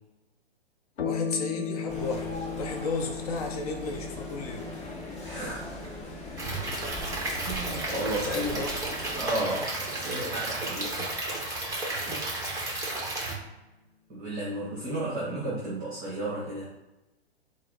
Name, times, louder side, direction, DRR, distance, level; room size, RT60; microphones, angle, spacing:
sound 1, 1.0-9.8, left 6 dB, 75° left, 0.7 m, -38 dB
voice 1, 1.0-4.7 8.3-9.0 10.2-10.4 11.0-11.1, left 3 dB, 35° left, 2 dB, 0.7 m, -34 dB
sound 2, 1.9-9.3, left 1 dB, 20° left, 1.0 m, -41 dB
voice 2, 5.2-5.9 7.5-8.7 9.2-11.2 12.1-12.6 14.1-16.6, right 1 dB, 25° right, -6 dB, 1.1 m, -34 dB
Stream / Liquid, 6.4-13.3, right 2 dB, 10° right, 0.9 m, -33 dB
4.5 x 2.0 x 3.9 m, 1.0 s
figure-of-eight pair, 120°, 33 cm